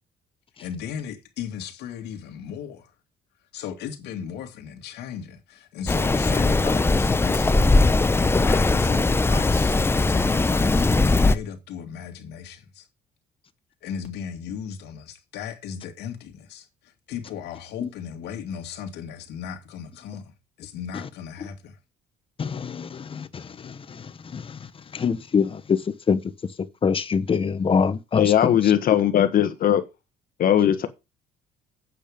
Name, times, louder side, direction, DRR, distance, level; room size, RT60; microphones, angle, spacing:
voice 1, 0.6-2.9 3.5-7.6 8.4-12.9 13.8-20.3 20.6-21.8, left 8 dB, 80° left, 2.5 m, -36 dB
Rain, 5.9-11.4, left 3 dB, 15° left, 0.7 m, -20 dB
voice 2, 22.4-24.6 24.9-25.8 26.1-26.2 26.8-28.3, left 6 dB, 30° left, 1.1 m, -25 dB
voice 3, 28.2-29.8 30.4-30.9, left 10 dB, 55° left, 1.3 m, -19 dB
8.6 x 8.6 x 5.2 m
cardioid pair, 110°, 17 cm